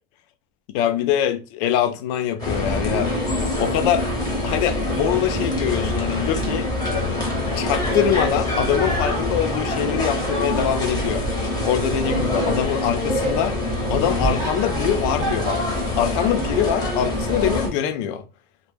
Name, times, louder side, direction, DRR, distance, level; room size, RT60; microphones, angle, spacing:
voice 1, 0.7-3.1 3.6-4.1 4.4-6.7 7.6-11.3 11.6-13.6 13.9-15.6 16.0-18.2, left 10 dB, 60° left, 0.4 m, -23 dB
sound 1, 2.4-17.7, left 1 dB, 15° left, 0.7 m, -24 dB
2.1 x 2.1 x 3.1 m
supercardioid pair, 150°, 30 cm